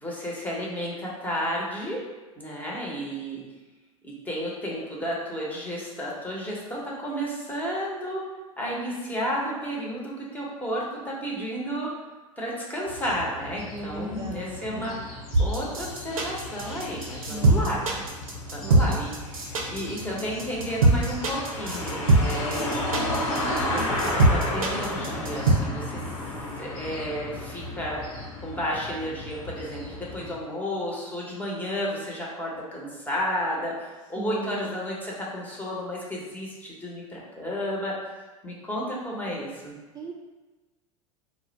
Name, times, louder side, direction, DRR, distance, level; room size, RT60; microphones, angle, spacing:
voice 1, 0.0-2.0 2.4-3.4 4.0-8.2 8.6-11.9 12.4-17.9 18.5-22.9 23.7-26.0 26.6-28.0 28.4-37.9 38.4-39.7, equal, 10° left, -4 dB, 0.9 m, -32 dB
sound 1, 12.9-30.3, left 1 dB, 70° left, 0.9 m, -34 dB
voice 2, 13.7-15.1 17.3-18.0 18.6-19.0 23.4-24.0 34.2-34.7 39.9-40.1, right 2 dB, 25° right, -3 dB, 0.3 m, -37 dB
sound 2, 15.3-25.5, right 2 dB, 90° right, 0.6 m, -21 dB
2.3 x 2.1 x 3.9 m, 1.2 s
hypercardioid pair, 90°, 18 cm